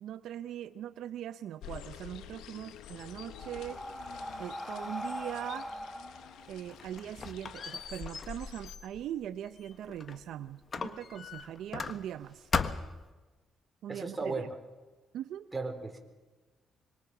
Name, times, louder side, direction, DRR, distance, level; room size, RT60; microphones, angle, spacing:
voice 1, 0.0-3.8 4.4-5.7 6.5-12.5 13.8-14.4 15.1-15.5, right 11 dB, 80° right, 13 dB, 0.7 m, -41 dB
sound 1, 1.6-8.8, left 10 dB, 85° left, 1.1 m, -50 dB
Breathing, 2.7-7.3, left 1 dB, 5° left, 1.4 m, -42 dB
Squeak, 6.4-10.2 10.7-12.2 12.5-13.1, left 5 dB, 40° left, 1.4 m, -38 dB
voice 2, 13.9-14.4 15.5-16.0, right 3 dB, 20° right, 4 dB, 4.2 m, -35 dB
26.0 x 23.5 x 6.1 m, 1.2 s
cardioid pair, 90°, 0 cm